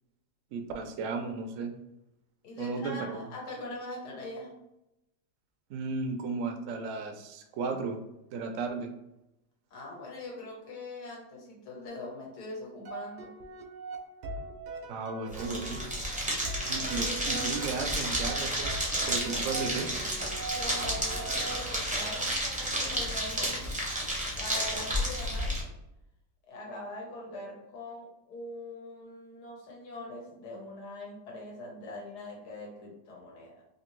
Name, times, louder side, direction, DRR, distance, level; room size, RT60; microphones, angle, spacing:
voice 1, 0.5-1.7 2.6-3.2 5.7-8.0 8.3-8.9 14.9-15.8 16.6-18.7 19.1-19.9, right 4 dB, 70° right, 5 dB, 0.7 m, -34 dB
voice 2, 2.4-4.5 9.7-13.3 16.8-17.1 20.4-23.7 24.3-25.7 26.5-33.6, left 2 dB, 75° left, -2 dB, 1.5 m, -42 dB
sound 1, 12.8-22.1, right 3 dB, 90° right, 1.3 m, -41 dB
sound 2, 15.3-25.6, equal, 10° right, 0.3 m, -31 dB
3.4 x 2.6 x 3.0 m, 0.89 s
omnidirectional pair, 1.8 m